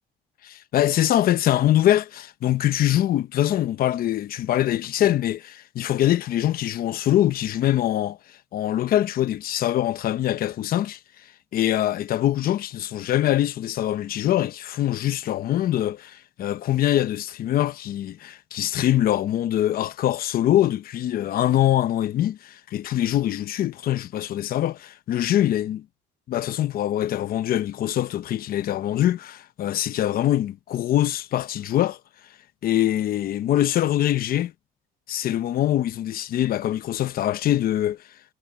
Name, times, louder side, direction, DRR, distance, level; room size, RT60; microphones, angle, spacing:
voice 1, 0.4-8.2 8.5-11.0 11.5-25.8 26.3-32.0 32.6-34.5 35.1-38.0, left 12 dB, 60° left, 0.9 m, -23 dB
cardioid pair, 110°, 17 cm